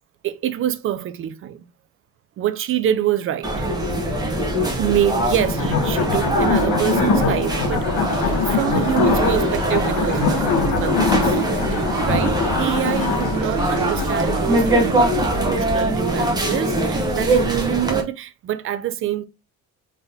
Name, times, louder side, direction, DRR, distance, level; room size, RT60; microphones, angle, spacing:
voice 1, 0.2-1.6 2.4-3.7 4.8-7.9 8.4-19.2, right 11 dB, 40° right, 0.4 m, -26 dB
sound 1, 3.4-18.0, right 1 dB, 10° right, 0.9 m, -22 dB
sound 2, 5.4-14.2, left 6 dB, 85° left, 1.1 m, -23 dB
sound 3, 7.2-15.9, right 3 dB, 85° right, 1.4 m, -33 dB
4.1 x 3.6 x 2.7 m
cardioid pair, 160°, 32 cm